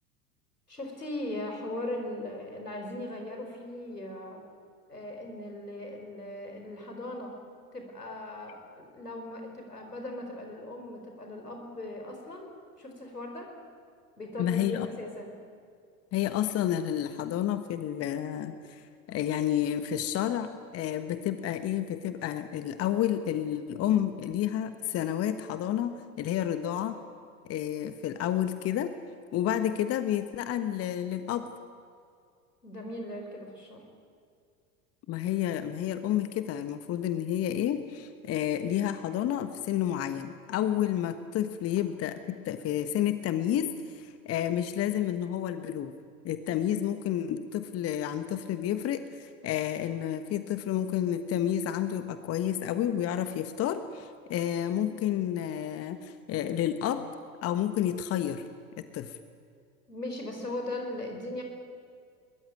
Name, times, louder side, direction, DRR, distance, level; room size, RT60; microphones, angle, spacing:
voice 1, 0.7-4.4 4.9-7.3 7.7-12.5 12.8-13.5 14.2-15.3 32.6-33.8 59.9-61.4, left 1 dB, 85° left, 3 dB, 4.6 m, -38 dB
voice 2, 14.4-14.9 16.1-18.8 19.1-27.0 27.4-28.9 29.3-31.5 35.1-45.9 46.2-57.1 57.4-58.4 58.8-59.1, left 11 dB, 30° left, 10 dB, 1.3 m, -30 dB
22.0 x 21.0 x 9.5 m, 2.3 s
figure-of-eight pair, 80°, 46 cm